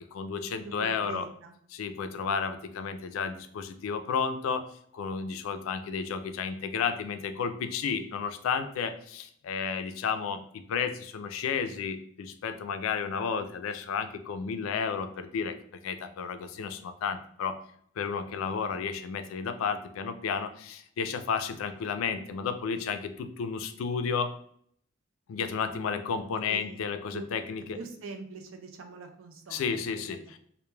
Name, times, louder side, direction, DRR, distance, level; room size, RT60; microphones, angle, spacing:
voice 1, 0.1-1.3 1.7-4.7 4.9-15.6 15.8-17.6 18.0-24.3 25.3-27.8 29.5-30.4, left 6 dB, 90° left, 9 dB, 0.3 m, -32 dB
voice 2, 0.6-1.5 26.5-26.8 27.1-27.3 27.7-30.2, right 4 dB, 85° right, 5 dB, 0.5 m, -43 dB
2.2 x 2.1 x 3.0 m, 0.65 s
head